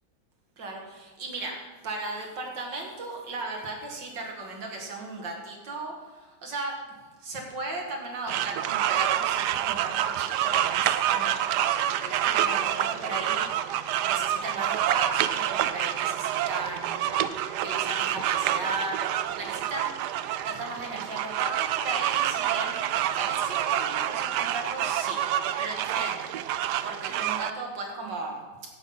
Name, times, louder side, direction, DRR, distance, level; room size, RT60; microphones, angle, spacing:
voice 1, 0.6-1.6 1.8-6.8 7.2-13.7 14.0-17.3 17.6-25.2 25.6-26.3 26.8-28.4, right 2 dB, 60° right, 1 dB, 2.5 m, -36 dB
sound 1, 8.3-27.5, right 11 dB, 75° right, 0.9 m, -27 dB
11.0 x 8.4 x 5.6 m, 1.2 s
omnidirectional pair, 2.2 m